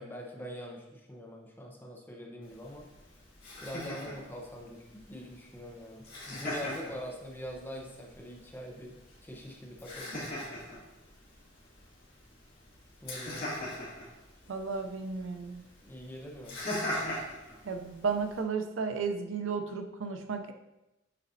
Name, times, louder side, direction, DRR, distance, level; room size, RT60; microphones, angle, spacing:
voice 1, 0.0-2.9 3.6-4.8 5.1-8.9 9.2-10.3 13.0-13.5 15.8-16.6, equal, 10° left, -1 dB, 0.8 m, -43 dB
Laughter, 2.4-18.4, left 1 dB, 50° left, 2.1 m, -42 dB
voice 2, 14.5-15.6 17.6-20.5, right 5 dB, 85° right, 7 dB, 0.5 m, -33 dB
8.3 x 4.1 x 2.7 m, 0.98 s
head